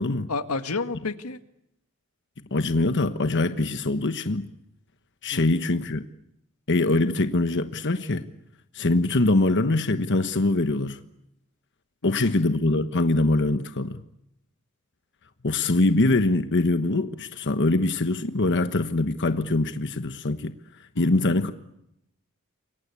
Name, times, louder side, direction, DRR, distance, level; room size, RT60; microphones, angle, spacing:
voice 1, 0.3-1.4 5.3-5.6 12.0-12.4 21.0-21.4, left 3 dB, 85° left, 1.7 m, -31 dB
voice 2, 2.5-4.5 5.2-6.0 6.7-8.3 8.7-11.0 12.0-14.0 15.4-20.5 21.0-21.5, left 2 dB, 55° left, 1.2 m, -23 dB
28.5 x 23.5 x 8.4 m
head